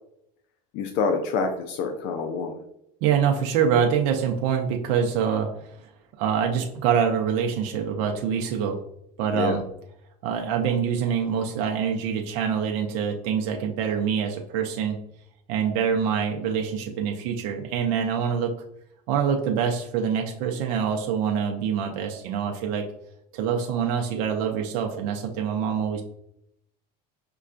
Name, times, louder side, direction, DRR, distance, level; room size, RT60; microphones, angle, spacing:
voice 1, 0.7-2.6 9.3-9.6, left 4 dB, 55° left, 5 dB, 0.4 m, -27 dB
voice 2, 3.0-5.5 5.8-5.9 6.2-8.8 9.2-9.6 10.2-15.0 15.5-18.5 19.1-22.9 23.3-26.0, right 7 dB, 65° right, 2 dB, 0.5 m, -25 dB
5.3 x 2.2 x 2.4 m, 0.78 s
cardioid pair, 150°, 21 cm